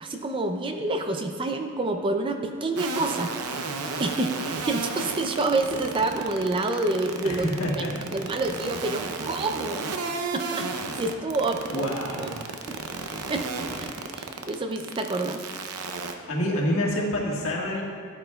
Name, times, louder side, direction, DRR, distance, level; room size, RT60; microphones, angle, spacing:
voice 1, 0.0-3.3 4.0-7.5 7.8-7.9 8.1-11.9 12.2-12.3 13.3-15.4, right 2 dB, 25° right, 5 dB, 0.4 m, -28 dB
sound 1, 2.8-16.1, right 4 dB, 80° right, 0.6 m, -32 dB
voice 2, 7.2-8.0 11.7-12.3 16.3-17.8, left 1 dB, 65° left, -3 dB, 1.6 m, -27 dB
12.0 x 8.8 x 2.3 m, 2.3 s
head